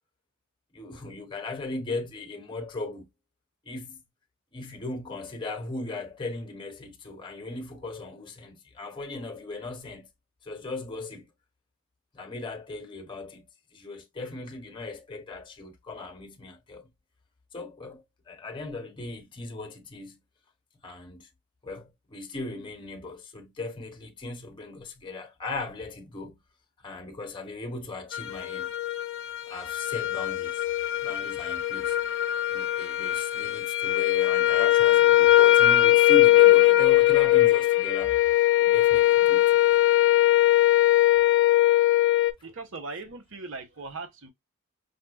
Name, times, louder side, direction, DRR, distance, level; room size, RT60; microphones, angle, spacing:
voice 1, 0.7-3.1 3.6-4.0 4.5-10.1 10.4-11.3 12.1-16.9 17.5-20.2 20.8-21.3 21.6-26.4 26.8-28.7 29.5-30.6 31.0-32.0 32.5-39.8, left 2 dB, 20° left, 0.7 m, -38 dB
sound 1, 28.1-42.3, left 15 dB, 55° left, 0.4 m, -21 dB
voice 2, 42.4-44.3, right 3 dB, 60° right, 0.9 m, -39 dB
5.1 x 2.1 x 2.2 m
head